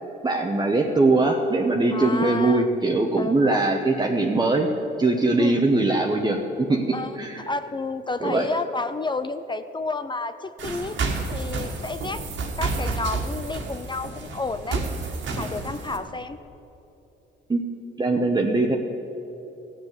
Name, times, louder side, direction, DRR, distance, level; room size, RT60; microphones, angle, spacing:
voice 1, 0.2-4.7 5.0-6.4 6.7-7.4 8.2-8.5 17.5-18.8, right 2 dB, 20° right, 2 dB, 0.9 m, -21 dB
voice 2, 1.9-2.7 3.2-3.7 5.4-5.6 6.9-11.0 11.3-12.3 12.6-14.8 15.4-16.4, left 3 dB, 25° left, 11 dB, 0.5 m, -31 dB
sound 1, 10.6-16.0, right 3 dB, 70° right, 1.9 m, -30 dB
16.0 x 7.3 x 7.9 m, 3.0 s
cardioid pair, 90°, 20 cm